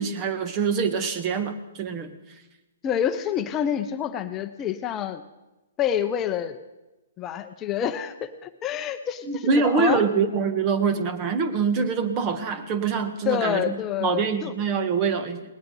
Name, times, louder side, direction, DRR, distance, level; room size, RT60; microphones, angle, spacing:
voice 1, 0.0-2.1 9.3-13.7 14.0-15.4, right 5 dB, 30° right, 10 dB, 1.4 m, -24 dB
voice 2, 2.8-5.2 5.8-6.6 7.2-10.0 13.3-14.5, left 9 dB, 25° left, 9 dB, 0.8 m, -27 dB
19.0 x 19.0 x 3.9 m, 1.0 s
figure-of-eight pair, 125°, 0 cm